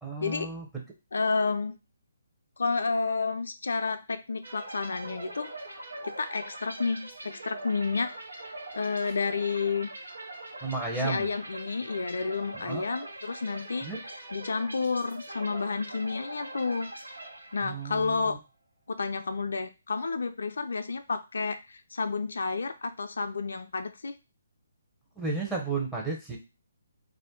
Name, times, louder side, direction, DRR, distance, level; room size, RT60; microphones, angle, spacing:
voice 1, 0.0-0.8 10.6-11.3 12.5-12.8 13.8-14.0 17.6-18.4 25.2-26.4, right 3 dB, 5° right, -2 dB, 0.7 m, -33 dB
voice 2, 1.1-1.8 2.6-5.6 6.0-9.9 11.0-13.9 14.3-16.9 17.5-18.4 18.9-24.1, left 4 dB, 70° left, 8 dB, 0.3 m, -30 dB
sound 1, 4.4-18.0, right 2 dB, 90° right, 0.8 m, -42 dB
2.4 x 2.0 x 3.7 m, 0.28 s
figure-of-eight pair, 145°, 0 cm